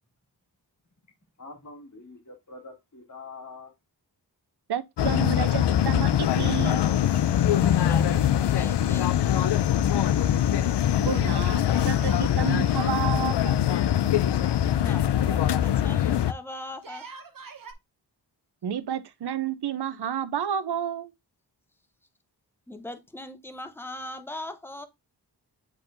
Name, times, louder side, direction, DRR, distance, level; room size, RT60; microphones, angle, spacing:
voice 1, 1.4-3.7, left 3 dB, 45° left, 2.5 m, -44 dB
voice 2, 4.7-6.8 11.0-13.6 18.6-21.1, right 9 dB, 70° right, 0.7 m, -31 dB
sound 1, 5.0-16.3, left 10 dB, 80° left, 0.5 m, -23 dB
voice 3, 7.3-9.1 14.7-17.0 22.7-24.9, left 1 dB, 5° left, 0.7 m, -40 dB
Yell, 8.4-9.3 9.6-9.7 11.7-13.1 14.4-15.8 16.7-17.7, right 5 dB, 50° right, 1.0 m, -45 dB
8.4 x 4.4 x 2.6 m
wide cardioid pair, 105°, 41 cm